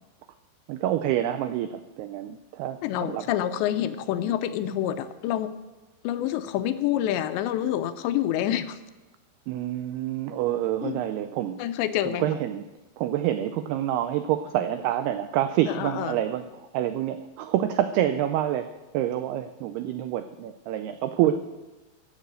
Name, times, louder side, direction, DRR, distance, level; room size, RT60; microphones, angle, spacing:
voice 1, 0.7-3.3 9.5-11.6 12.1-12.6 13.0-21.4, right 11 dB, 90° right, 10 dB, 2.2 m, -27 dB
voice 2, 2.8-5.5 6.0-8.8 10.8-11.0 11.6-12.4 15.7-16.2, left 11 dB, 80° left, 11 dB, 2.8 m, -27 dB
15.0 x 7.5 x 7.6 m, 1.2 s
omnidirectional pair, 5.3 m